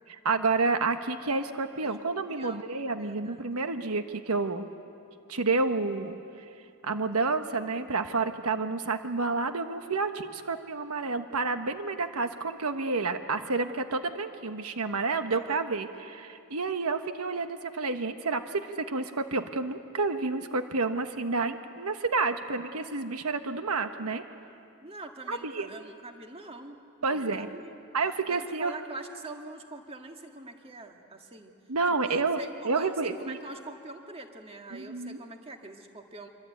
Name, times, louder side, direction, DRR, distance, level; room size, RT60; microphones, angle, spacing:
voice 1, 0.1-4.7 5.3-6.2 6.8-24.2 25.3-25.7 27.0-27.5 27.9-28.7 31.7-33.4 34.7-35.2, right 3 dB, 80° right, 8 dB, 1.2 m, -29 dB
voice 2, 2.3-3.5 15.3-15.7 24.8-26.8 27.1-27.7 28.3-31.5 32.0-36.3, right 2 dB, 25° right, 4 dB, 1.8 m, -44 dB
26.0 x 24.5 x 9.1 m, 2.5 s
head